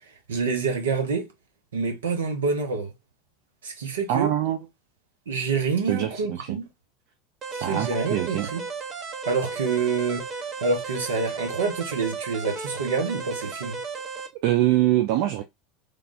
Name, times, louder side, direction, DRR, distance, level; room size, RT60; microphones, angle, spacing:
voice 1, 0.3-1.3 1.7-2.9 3.6-4.3 5.3-6.7 7.5-8.6 9.2-10.3 10.6-13.8, right 4 dB, 80° right, 0.8 m, -27 dB
voice 2, 4.1-4.6 5.9-6.6 7.6-8.5 14.4-15.4, right 14 dB, 60° right, 0.4 m, -24 dB
sound 1, 7.4-14.3, right 4 dB, 40° right, 0.8 m, -34 dB
3.3 x 2.3 x 2.5 m
figure-of-eight pair, 75°, 0 cm